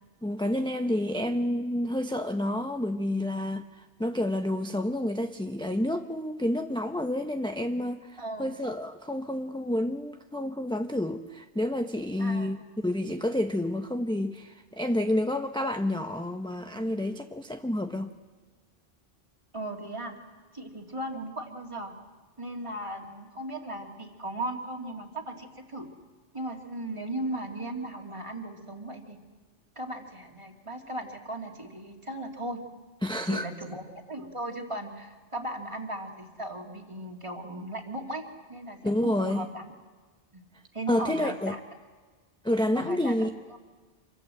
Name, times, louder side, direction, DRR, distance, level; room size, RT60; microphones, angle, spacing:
voice 1, 0.2-12.6 12.8-18.1 33.0-33.5 38.8-39.5 40.9-41.6 42.4-43.3, left 1 dB, 5° left, 5 dB, 0.7 m, -29 dB
voice 2, 8.2-8.5 12.2-12.5 19.5-20.1 20.5-22.0 22.4-25.9 26.3-29.2 29.8-32.6 33.3-38.2 38.5-39.7 40.3-40.4 40.7-41.6 42.7-43.2, right 1 dB, 30° right, 2 dB, 2.6 m, -37 dB
26.5 x 24.0 x 7.7 m, 1.4 s
omnidirectional pair, 1.0 m